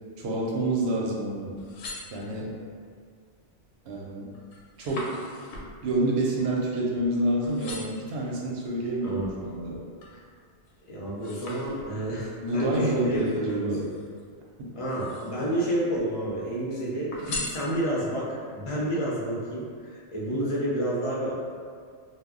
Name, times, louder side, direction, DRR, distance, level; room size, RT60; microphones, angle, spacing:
voice 1, 0.2-1.5 2.1-2.5 3.9-4.3 4.8-5.3 5.8-9.8 12.4-13.8 14.6-14.7 17.3-17.4, right 1 dB, 70° right, -3 dB, 0.8 m, -28 dB
sound 1, 1.5-2.7 3.3-3.7 4.0-7.1 7.4-8.1 8.7-10.2 10.6-12.2 13.1-14.2 14.8-15.6 15.9-16.6 17.1-18.2 18.7-18.8, left 2 dB, 85° left, 0.9 m, -41 dB
voice 2, 9.0-9.3 10.1-10.2 10.9-13.9 14.7-17.2 17.4-21.3, right 1 dB, 40° left, -6 dB, 0.4 m, -30 dB
2.2 x 2.0 x 3.6 m, 2.1 s
omnidirectional pair, 1.2 m